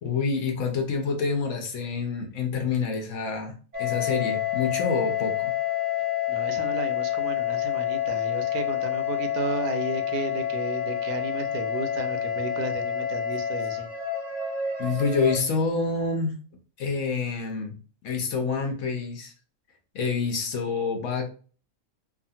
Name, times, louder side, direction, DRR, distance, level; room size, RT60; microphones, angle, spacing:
voice 1, 0.0-5.5 14.8-16.3 16.8-17.8 18.0-19.3 19.9-21.3, left 5 dB, 65° left, 4 dB, 0.9 m, -27 dB
sound 1, 3.7-15.4, left 10 dB, 45° right, 0.5 m, -28 dB
voice 2, 6.3-13.9, right 4 dB, 85° right, 7 dB, 1.1 m, -33 dB
2.7 x 2.4 x 2.6 m, 0.38 s
omnidirectional pair, 1.5 m